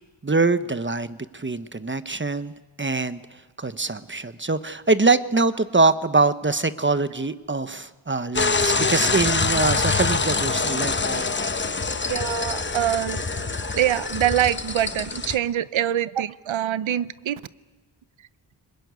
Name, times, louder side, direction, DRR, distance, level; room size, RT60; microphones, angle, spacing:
voice 1, 0.2-2.5 2.8-3.2 3.6-11.2, right 3 dB, 25° right, 12 dB, 1.0 m, -23 dB
sound 1, 8.3-15.4, left 4 dB, 25° left, 0.9 m, -25 dB
voice 2, 12.1-13.2 13.6-17.4, right 11 dB, 80° right, 16 dB, 0.8 m, -24 dB
23.0 x 21.0 x 9.6 m, 1.2 s
cardioid pair, 65°, 46 cm